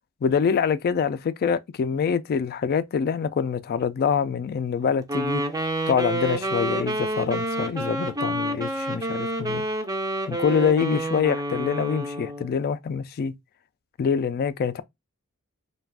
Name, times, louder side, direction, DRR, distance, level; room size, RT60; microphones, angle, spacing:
voice 1, 0.2-5.4 5.9-9.7 10.3-13.3 14.0-14.8, left 6 dB, 45° left, 0.3 m, -25 dB
Wind instrument woodwind instrument, 5.1-12.5, right 1 dB, 15° right, 0.4 m, -28 dB
2.4 x 2.2 x 3.3 m
head